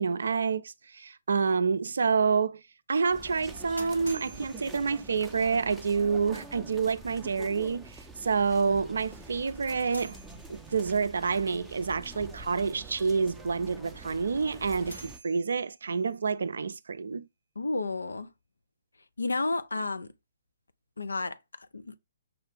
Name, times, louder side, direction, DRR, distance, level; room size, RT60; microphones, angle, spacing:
voice 1, 0.0-2.6 2.9-10.2 10.5-17.3, right 5 dB, 60° right, 0.4 m, -28 dB
sound 1, 3.1-15.2, right 2 dB, 5° right, 0.5 m, -46 dB
Buying Sounds, 3.3-5.5 9.3-11.0 14.3-16.1, right 2 dB, 90° left, 1.1 m, -49 dB
voice 2, 17.6-18.3 19.2-20.1 21.0-22.0, left 3 dB, 75° left, 0.5 m, -32 dB
6.0 x 2.4 x 3.5 m
figure-of-eight pair, 130°, 0 cm